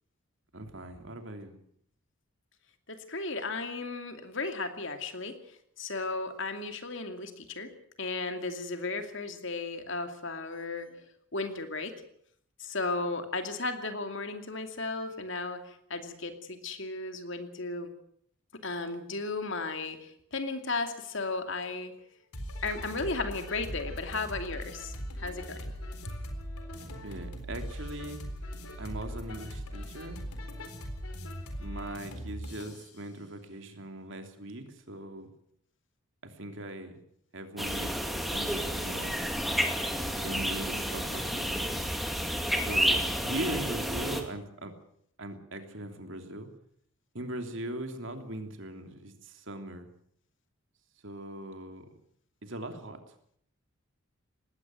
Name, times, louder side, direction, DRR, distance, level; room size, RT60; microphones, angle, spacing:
voice 1, 0.5-1.6 27.0-28.2 28.8-30.2 31.6-35.3 36.2-37.0 37.3-37.9 38.3-39.2 40.2-41.8 42.7-44.7 45.2-46.5 47.1-49.9 51.0-51.9 52.4-53.0, right 1 dB, 55° right, 6 dB, 3.0 m, -40 dB
voice 2, 2.9-5.4 5.8-7.7 8.0-10.9 11.3-12.0 12.6-17.9 18.6-21.9 22.6-25.7 26.0-26.1, left 3 dB, 55° left, 7 dB, 2.6 m, -35 dB
sound 1, 22.3-32.9, equal, 85° left, 4.1 m, -40 dB
sound 2, 37.6-44.2, equal, ahead, 2.2 m, -30 dB
19.5 x 16.5 x 9.1 m, 0.67 s
head